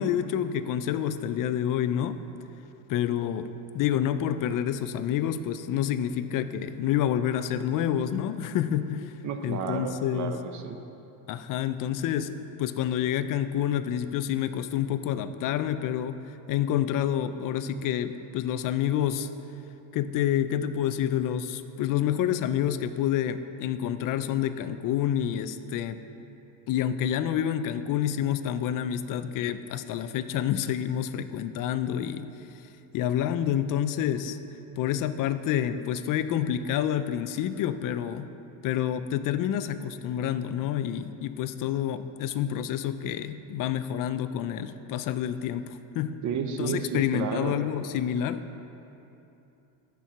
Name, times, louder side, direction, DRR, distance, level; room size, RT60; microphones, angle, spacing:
voice 1, 0.0-2.2 2.9-3.5 3.7-9.1 9.4-10.3 11.3-12.3 12.6-16.2 16.5-19.3 19.9-26.0 26.7-32.3 32.9-34.4 34.8-38.3 38.6-46.2 46.6-48.4, left 10 dB, 45° left, 11 dB, 0.4 m, -28 dB
voice 2, 9.2-10.8 46.2-47.6, right 6 dB, 40° right, 6 dB, 0.7 m, -32 dB
13.5 x 4.6 x 5.7 m, 2.9 s
cardioid pair, 145°, 46 cm